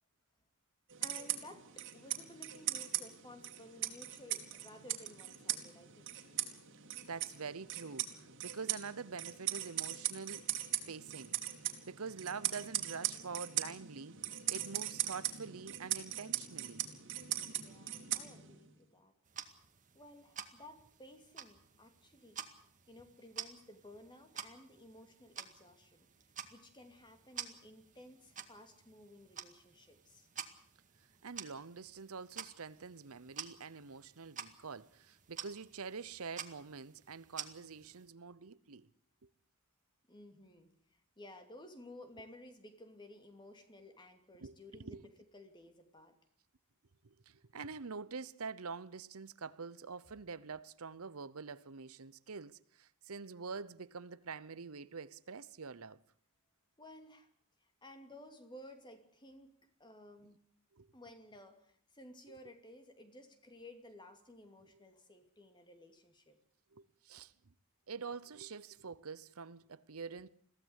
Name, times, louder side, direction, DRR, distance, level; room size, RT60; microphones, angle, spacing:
sound 1, 0.9-18.7, right 12 dB, 55° right, 2.8 m, -40 dB
voice 1, 1.0-6.1 17.5-19.1 19.9-22.4 22.9-26.1 26.5-30.3 40.1-46.2 56.8-57.3 57.6-59.5 59.8-60.4 60.9-66.4, left 1 dB, 20° left, 2.8 m, -56 dB
voice 2, 7.1-10.4 10.9-11.3 11.9-14.2 14.5-16.9 31.2-38.9 44.4-45.0 47.3-56.0 60.8-60.9 66.7-67.3 67.9-70.3, right 5 dB, 70° right, 0.8 m, -46 dB
sound 2, 19.2-38.1, right 8 dB, 35° right, 1.9 m, -50 dB
22.5 x 16.0 x 8.2 m
head